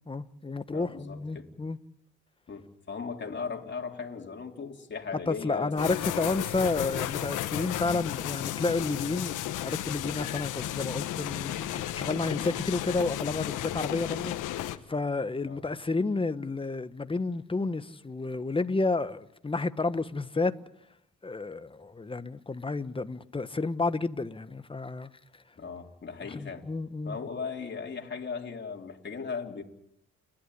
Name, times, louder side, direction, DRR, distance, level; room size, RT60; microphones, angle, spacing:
voice 1, 0.1-1.8 5.3-20.6 21.2-25.1 26.3-27.2, left 3 dB, 15° left, 1.2 m, -31 dB
voice 2, 0.7-1.5 2.5-5.7 6.0-6.2 15.4-15.6 25.6-26.7 27.0-29.6, left 5 dB, 35° left, 3.5 m, -37 dB
sound 1, 5.8-14.8, left 13 dB, 85° left, 1.3 m, -33 dB
29.5 x 12.0 x 9.9 m
cardioid pair, 90°, 30 cm